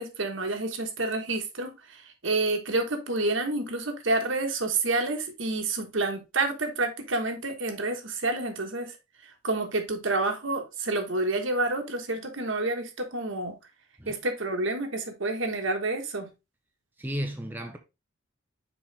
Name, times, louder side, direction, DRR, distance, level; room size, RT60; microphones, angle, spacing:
voice 1, 0.0-9.0 9.2-13.5 14.1-16.3, right 2 dB, 65° right, 1.4 m, -29 dB
voice 2, 17.0-17.8, equal, 10° right, 0.6 m, -33 dB
6.3 x 4.7 x 3.3 m
head